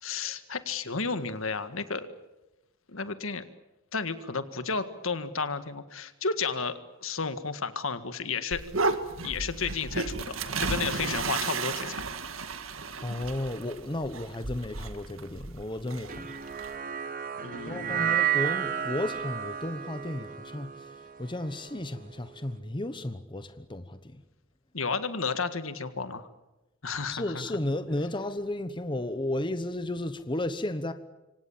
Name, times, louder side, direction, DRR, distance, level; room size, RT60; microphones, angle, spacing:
voice 1, 0.0-2.1 2.9-3.4 3.9-8.6 9.2-12.0 17.4-18.2 24.7-26.3 26.8-27.5, left 5 dB, 70° left, 1.8 m, -32 dB
sound 1, 8.5-16.8, right 4 dB, 70° right, 1.9 m, -34 dB
voice 2, 13.0-16.3 17.7-24.2 27.1-30.9, left 1 dB, 25° left, 1.1 m, -33 dB
sound 2, 16.1-22.5, right 10 dB, 40° right, 1.6 m, -32 dB
27.5 x 24.5 x 7.4 m
head